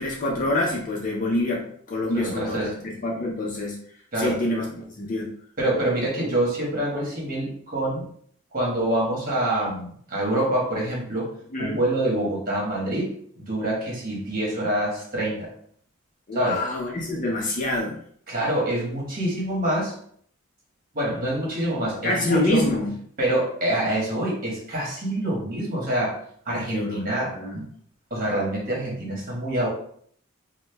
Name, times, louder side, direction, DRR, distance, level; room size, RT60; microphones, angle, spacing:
voice 1, 0.0-3.8 4.1-4.7 5.0-5.3 11.5-11.8 16.3-18.0 22.0-22.9 26.7-27.6, left 2 dB, 40° left, -2 dB, 0.5 m, -26 dB
voice 2, 2.1-2.7 4.1-4.4 5.6-8.1 8.5-11.3 11.6-15.5 16.3-16.6 18.3-19.9 20.9-22.6 23.2-26.2 26.5-27.7 28.1-29.7, right 1 dB, 45° right, -3 dB, 1.2 m, -26 dB
5.0 x 2.2 x 2.2 m, 0.62 s
head